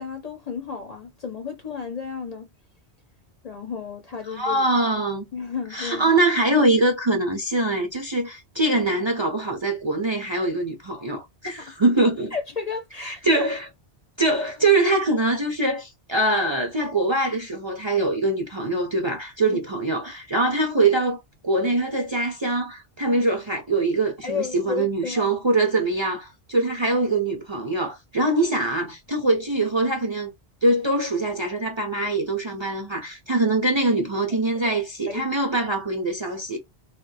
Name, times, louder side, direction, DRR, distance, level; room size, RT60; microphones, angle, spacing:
voice 1, 0.0-2.5 3.4-4.7 5.3-6.1 11.4-11.7 12.3-13.5 14.6-14.8 19.5-19.6 24.2-25.4 35.1-35.3, left 5 dB, 45° left, 0.6 m, -33 dB
voice 2, 4.3-5.3 5.7-12.3 13.0-13.7 14.2-30.3 30.6-36.6, right 2 dB, 35° right, 0.5 m, -23 dB
2.7 x 2.2 x 3.8 m
omnidirectional pair, 1.1 m